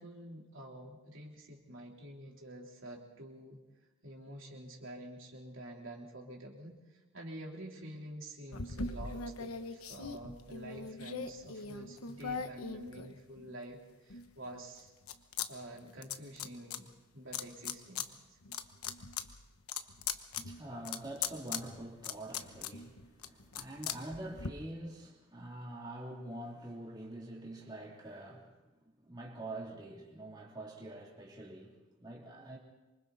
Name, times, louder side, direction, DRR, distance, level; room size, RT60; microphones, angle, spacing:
voice 1, 0.0-3.6 4.0-14.9 15.5-18.4, right 1 dB, 60° right, -1 dB, 3.6 m, -48 dB
sound 1, 8.5-13.6 14.1-15.5 15.7-16.8 17.3-18.1 18.4-24.5, left 6 dB, 90° left, 1.1 m, -40 dB
voice 2, 20.4-28.5 29.0-32.6, right 1 dB, 20° right, -3 dB, 3.0 m, -45 dB
26.5 x 24.5 x 4.1 m, 1.1 s
head